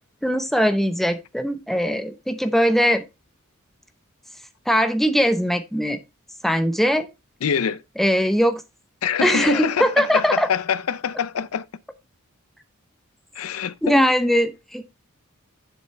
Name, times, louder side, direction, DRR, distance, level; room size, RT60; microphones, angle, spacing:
voice 1, 0.2-3.0 4.7-6.0 6.4-7.1 8.0-8.6 9.2-10.5 13.8-14.9, equal, ahead, 0.8 m, -20 dB
voice 2, 7.4-7.8 9.0-11.7 13.3-14.0, left 7 dB, 80° left, 0.5 m, -25 dB
7.0 x 6.9 x 3.3 m
head